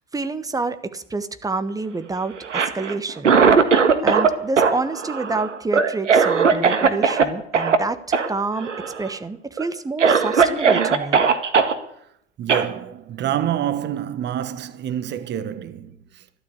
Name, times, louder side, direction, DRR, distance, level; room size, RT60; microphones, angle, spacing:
voice 1, 0.1-3.4 4.0-8.0 8.3-11.2, right 3 dB, 10° right, 1.2 m, -28 dB
Cough, 2.4-4.3 4.6-7.2 7.5-7.8 8.1-8.3 8.6-9.1 9.6-9.7 10.0-11.7 12.5-12.7, right 5 dB, 85° right, 1.6 m, -18 dB
voice 2, 12.4-16.2, right 10 dB, 30° right, 1.3 m, -27 dB
13.5 x 12.0 x 8.3 m
hypercardioid pair, 90°, 36 cm